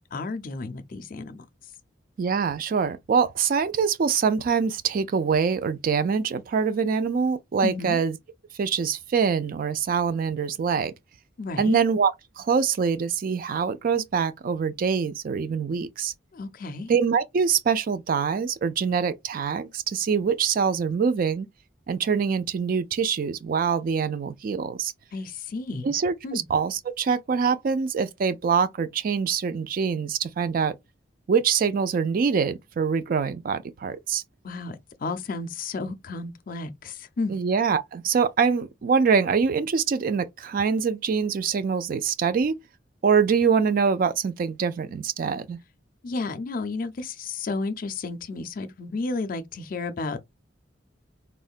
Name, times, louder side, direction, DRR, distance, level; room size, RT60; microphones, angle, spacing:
voice 1, 0.1-1.5 7.6-8.0 11.4-11.8 16.3-17.0 25.1-25.9 26.2-26.4 34.4-37.4 46.0-50.2, left 3 dB, 50° left, 0.4 m, -32 dB
voice 2, 2.2-8.2 8.6-10.9 11.6-16.1 16.9-21.5 21.9-24.9 25.8-30.8 31.3-34.2 37.3-42.6 43.0-45.6, right 6 dB, 50° right, 0.3 m, -24 dB
3.6 x 2.1 x 2.4 m
head